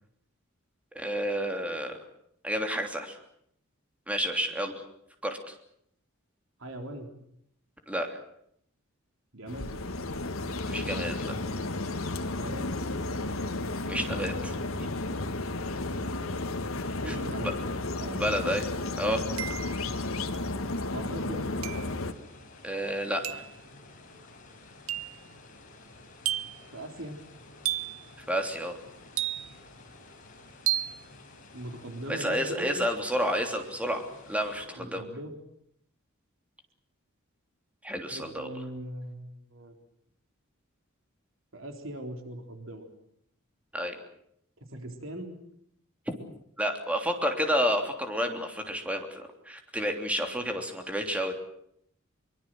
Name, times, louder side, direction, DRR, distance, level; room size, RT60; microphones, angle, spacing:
voice 1, 0.9-2.0 2.4-3.2 4.1-4.7 5.2-5.5 7.9-8.1 10.7-11.3 13.9-14.5 17.0-17.5 18.2-18.6 19.0-19.2 22.6-23.4 28.3-28.8 32.1-35.0 37.8-38.5 43.7-44.0 46.6-51.3, equal, 5° right, 4 dB, 3.2 m, -30 dB
voice 2, 6.6-7.2 9.3-9.8 12.4-12.7 17.0-17.6 17.9-18.3 20.9-21.5 26.7-27.2 31.5-32.8 34.8-35.3 38.1-39.8 41.5-42.9 44.7-45.4, right 1 dB, 70° right, 4 dB, 3.9 m, -40 dB
sound 1, 9.5-22.1, left 2 dB, 85° left, 1.8 m, -33 dB
sound 2, 18.2-18.3 19.4-19.9 21.6-22.0 23.2-23.6 24.9-25.2 26.3-26.7 27.7-28.1 29.2-29.7 30.7-31.0, right 12 dB, 90° right, 0.9 m, -32 dB
sound 3, 21.6-34.7, left 2 dB, 40° left, 6.2 m, -52 dB
23.5 x 23.0 x 7.8 m, 0.72 s
head